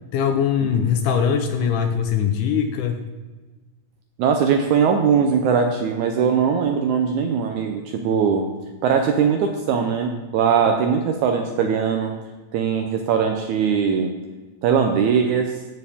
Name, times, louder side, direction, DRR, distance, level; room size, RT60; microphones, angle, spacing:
voice 1, 0.1-3.0, left 7 dB, 75° left, 6 dB, 2.0 m, -21 dB
voice 2, 4.2-8.5 8.8-12.1 12.5-14.1 14.6-15.6, right 6 dB, 80° right, 4 dB, 1.8 m, -20 dB
15.5 x 6.9 x 3.5 m, 1.2 s
omnidirectional pair, 4.0 m